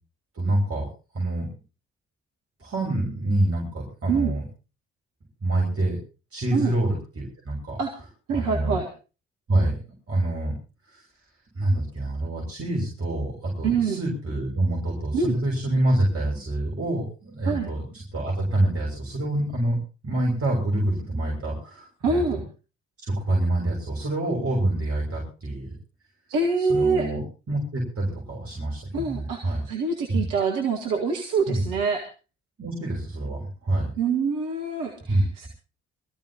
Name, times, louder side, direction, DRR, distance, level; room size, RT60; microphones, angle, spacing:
voice 1, 0.3-0.9 1.1-1.5 2.6-4.4 5.4-6.0 6.3-7.8 8.3-8.8 9.5-9.7 10.1-10.5 10.9-11.1 11.5-19.8 20.0-22.4 23.0-25.7 26.6-29.6 30.1-30.2 31.5-31.8 32.6-33.9 35.1-35.2, right 1 dB, 40° right, -3 dB, 6.7 m, -26 dB
voice 2, 8.3-8.9 13.6-14.0 15.1-15.4 17.4-17.7 22.0-22.4 26.3-27.1 28.9-32.1 34.0-35.5, right 4 dB, 65° right, 1 dB, 2.0 m, -25 dB
24.0 x 14.5 x 3.0 m, 0.32 s
figure-of-eight pair, 40°, 34 cm